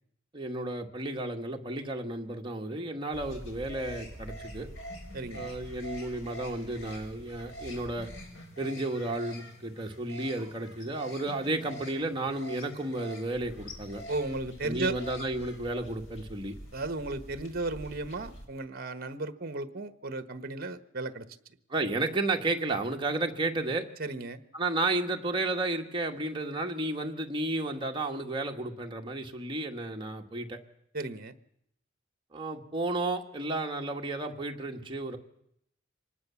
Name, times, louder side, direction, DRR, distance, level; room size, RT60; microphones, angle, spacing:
voice 1, 0.3-4.7 5.3-8.1 8.6-14.0 14.6-16.5 21.7-23.9 24.5-30.6 32.3-35.2, right 2 dB, 25° right, 2 dB, 1.9 m, -32 dB
sound 1, 3.1-18.4, right 1 dB, 70° left, 4.4 m, -45 dB
voice 2, 5.1-5.5 14.1-14.9 16.7-21.3 24.0-24.4 30.9-31.3, right 2 dB, 50° right, 11 dB, 1.3 m, -34 dB
25.0 x 19.0 x 7.2 m, 0.75 s
head